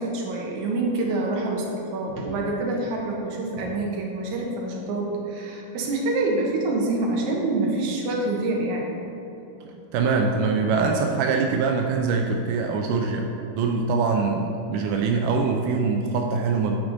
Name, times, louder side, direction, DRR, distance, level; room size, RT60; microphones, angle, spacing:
voice 1, 0.0-8.9, right 2 dB, 65° right, -1 dB, 2.1 m, -26 dB
voice 2, 9.6-13.3 13.6-16.8, right 4 dB, 85° right, 2 dB, 1.8 m, -23 dB
9.0 x 6.7 x 3.9 m, 3.0 s
omnidirectional pair, 4.3 m